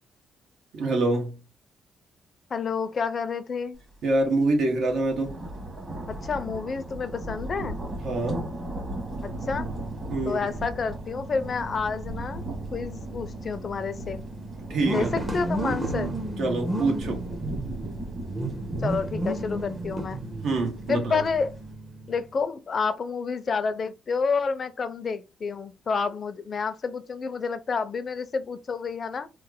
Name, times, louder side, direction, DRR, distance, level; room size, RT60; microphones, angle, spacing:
voice 1, 0.7-1.4 4.0-5.4 8.0-8.5 10.1-10.5 14.7-15.2 16.4-17.2 20.4-21.2, right 2 dB, 75° right, 1.0 m, -25 dB
voice 2, 2.5-3.8 6.1-7.8 9.2-9.7 10.3-12.4 12.7-14.2 14.9-16.1 18.8-20.2 20.9-21.5 22.1-29.3, left 5 dB, 45° left, 0.5 m, -29 dB
sound 1, 3.9-4.1 4.5-21.7, right 1 dB, 35° right, 1.4 m, -37 dB
sound 2, 8.9-22.3, right 1 dB, 20° right, 0.7 m, -34 dB
3.1 x 2.1 x 3.5 m
cardioid pair, 90°, 0 cm